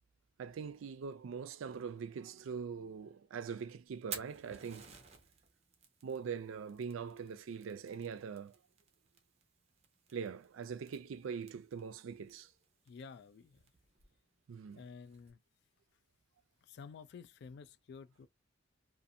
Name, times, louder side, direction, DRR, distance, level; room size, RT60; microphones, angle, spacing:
voice 1, 0.4-5.0 6.0-8.6 10.1-12.5 14.5-14.8, right 6 dB, 85° right, 0.4 m, -42 dB
Fire, 3.9-15.3, right 7 dB, 35° right, 0.6 m, -55 dB
voice 2, 12.9-13.6 14.7-15.4 16.6-18.3, left 5 dB, 55° left, 0.3 m, -51 dB
2.6 x 2.4 x 2.6 m
head